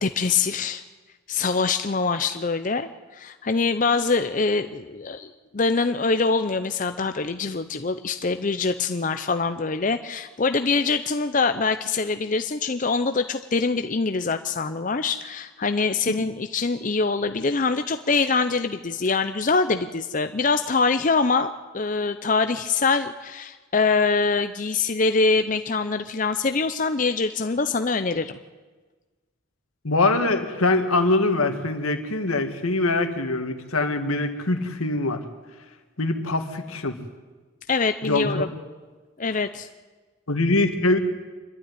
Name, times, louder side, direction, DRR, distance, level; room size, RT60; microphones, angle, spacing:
voice 1, 0.0-0.8 1.3-28.4 37.7-38.5 39.2-39.7, left 4 dB, 35° left, 9 dB, 0.6 m, -24 dB
voice 2, 29.8-35.2 36.0-37.0 38.0-38.4 40.3-41.0, left 2 dB, 85° left, 6 dB, 2.0 m, -23 dB
25.5 x 12.0 x 9.8 m, 1.3 s
head